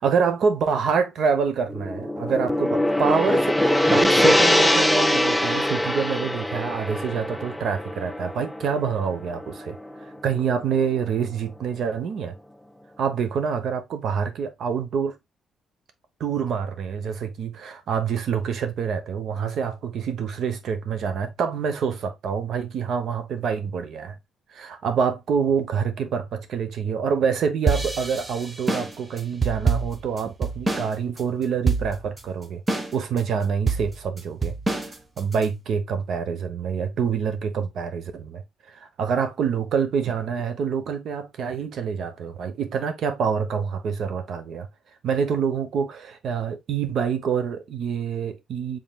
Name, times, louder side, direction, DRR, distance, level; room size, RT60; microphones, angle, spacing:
voice 1, 0.0-12.3 13.0-15.2 16.2-24.2 24.5-32.6 32.9-34.6 35.2-44.7 45.0-48.8, right 6 dB, 65° right, 0.9 m, -26 dB
Gong, 1.7-10.0, left 1 dB, 5° left, 0.4 m, -22 dB
sound 1, 27.7-30.9 31.2-31.3 31.7-32.2 32.7-33.2 33.7-35.4, right 4 dB, 20° right, 0.9 m, -25 dB
5.5 x 3.7 x 2.3 m
cardioid pair, 90°, 0 cm